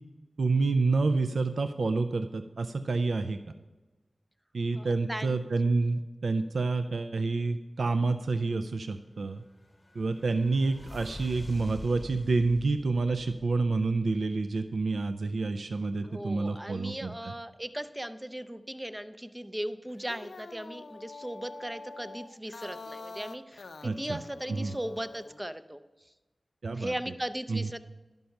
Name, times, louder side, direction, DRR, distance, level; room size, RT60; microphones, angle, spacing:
voice 1, 0.4-3.4 4.5-9.4 10.0-17.3 23.8-24.2 24.5-24.7 26.6-26.9 27.5-27.7, right 3 dB, 85° right, 9 dB, 0.4 m, -28 dB
voice 2, 4.7-5.4 16.0-25.8 26.7-27.8, right 1 dB, 10° right, 11 dB, 0.4 m, -38 dB
sound 1, 9.1-14.1, left 1 dB, 25° left, 1.1 m, -47 dB
sound 2, 19.9-25.4, left 3 dB, 85° left, 0.4 m, -46 dB
11.5 x 5.3 x 5.8 m, 1.2 s
wide cardioid pair, 80°, 0 cm